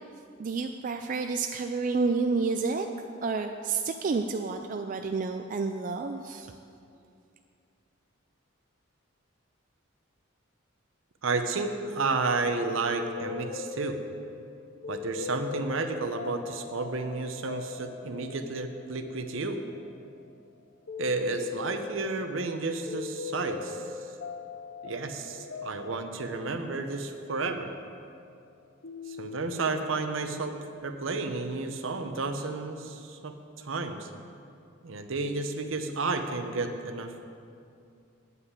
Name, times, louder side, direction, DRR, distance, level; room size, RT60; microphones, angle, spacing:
voice 1, 0.4-2.9 3.2-6.5, right 4 dB, 40° right, 5 dB, 0.3 m, -29 dB
voice 2, 11.2-14.0 14.9-19.6 21.0-23.8 24.8-27.7 29.1-30.6 30.8-34.1 34.8-37.1, right 3 dB, 70° right, 7 dB, 0.8 m, -31 dB
sound 1, 12.9-28.5 28.8-30.8, left 6 dB, 55° left, 0.6 m, -41 dB
9.3 x 5.6 x 8.2 m, 2.5 s
head